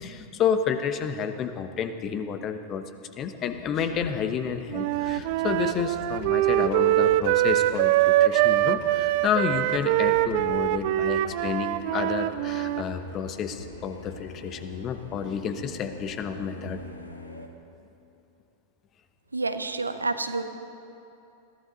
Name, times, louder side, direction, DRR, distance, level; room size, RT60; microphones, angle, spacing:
voice 1, 0.0-2.9 3.2-16.8, left 7 dB, 30° left, 9 dB, 1.0 m, -30 dB
sound 1, 3.2-17.5, left 1 dB, 85° left, 1.3 m, -44 dB
Wind instrument woodwind instrument, 4.7-12.8, right 15 dB, 45° right, 0.4 m, -23 dB
voice 2, 19.3-20.4, right 3 dB, 80° right, 9 dB, 0.9 m, -28 dB
22.0 x 15.0 x 4.0 m, 2.8 s
figure-of-eight pair, 90°, 0 cm